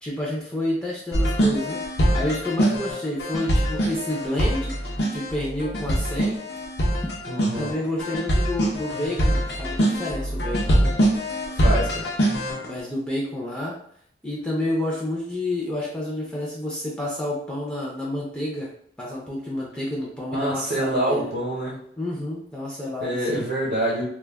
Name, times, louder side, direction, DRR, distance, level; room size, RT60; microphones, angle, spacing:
voice 1, 0.0-6.4 7.6-10.9 11.3-11.4 11.7-11.9 12.6-13.8 14.2-18.7 19.0-21.3 22.0-23.4, left 1 dB, 5° left, -5 dB, 0.4 m, -29 dB
sound 1, 1.1-12.7, equal, 60° left, 0.6 m, -23 dB
voice 2, 7.3-7.7 11.6-12.1 20.3-21.8 23.0-24.0, right 1 dB, 60° right, -5 dB, 0.7 m, -26 dB
2.2 x 2.1 x 3.3 m, 0.68 s
head